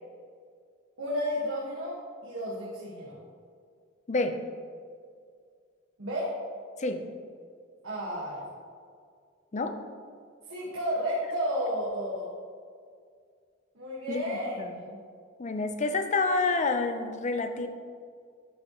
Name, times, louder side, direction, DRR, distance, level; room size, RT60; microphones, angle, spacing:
voice 1, 1.0-2.0 2.2-3.2 6.0-6.3 7.8-8.4 10.5-12.3 13.7-15.0, equal, 80° right, -7 dB, 1.5 m, -32 dB
voice 2, 14.1-14.8 15.4-17.7, left 3 dB, 35° left, 7 dB, 0.5 m, -28 dB
11.5 x 5.5 x 3.0 m, 2.1 s
head